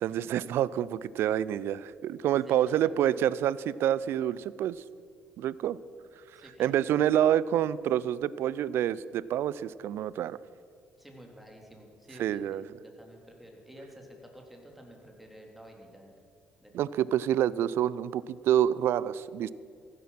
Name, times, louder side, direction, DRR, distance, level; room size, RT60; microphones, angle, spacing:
voice 1, 0.0-4.8 5.4-5.8 6.6-10.4 12.2-12.6 16.7-19.5, right 11 dB, 65° right, 19 dB, 0.4 m, -27 dB
voice 2, 2.4-3.0 6.4-7.0 11.0-16.1 16.6-16.9, equal, 5° right, 1 dB, 3.7 m, -51 dB
15.0 x 11.5 x 6.0 m, 2.2 s
hypercardioid pair, 50°, 4 cm